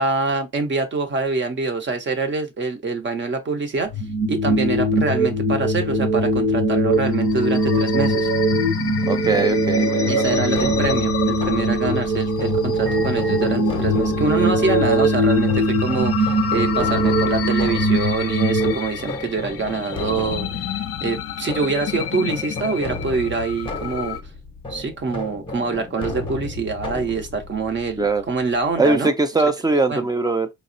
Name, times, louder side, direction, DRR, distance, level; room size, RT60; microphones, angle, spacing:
voice 1, 0.0-3.9 4.3-8.3 10.1-24.2 24.7-29.1 29.9-30.0, right 4 dB, 40° right, 0.9 m, -25 dB
sound 1, 3.9-18.7, right 1 dB, 80° right, 1.0 m, -21 dB
sound 2, 6.9-24.2, left 9 dB, 50° left, 0.5 m, -30 dB
voice 2, 9.1-10.3 28.0-28.2 28.8-30.5, right 3 dB, 15° right, 0.5 m, -21 dB
sound 3, 10.3-29.0, left 2 dB, 15° left, 0.8 m, -34 dB
3.9 x 2.1 x 2.6 m
cardioid pair, 90°, 30 cm